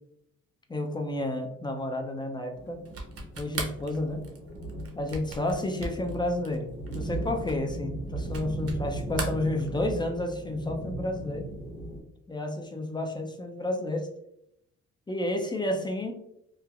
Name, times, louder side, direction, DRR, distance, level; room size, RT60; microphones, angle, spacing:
voice 1, 0.7-2.8 3.4-4.3 4.9-6.7 6.9-11.5 12.3-14.1 15.1-16.1, left 1 dB, 15° left, 3 dB, 0.4 m, -31 dB
sound 1, 2.5-12.0, right 1 dB, 40° left, 1.1 m, -38 dB
sound 2, 2.9-8.8 9.1-10.1, right 3 dB, 50° right, 0.8 m, -38 dB
3.1 x 2.1 x 2.4 m, 0.77 s
cardioid pair, 90°, 30 cm